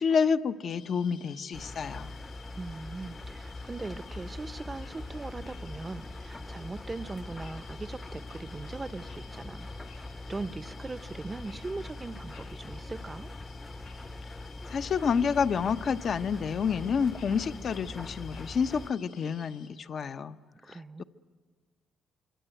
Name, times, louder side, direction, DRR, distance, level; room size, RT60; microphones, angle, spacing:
voice 1, 0.0-2.1 14.7-20.3, left 6 dB, 55° left, 10 dB, 0.9 m, -29 dB
sound 1, 0.7-19.7, left 6 dB, 85° left, 5.4 m, -55 dB
Engine, 1.5-18.9, left 2 dB, 20° left, 0.9 m, -42 dB
voice 2, 2.5-9.7 9.9-13.3 20.6-21.0, right 3 dB, 25° right, 14 dB, 0.8 m, -40 dB
26.0 x 24.5 x 9.1 m, 1.5 s
cardioid pair, 90°, 0 cm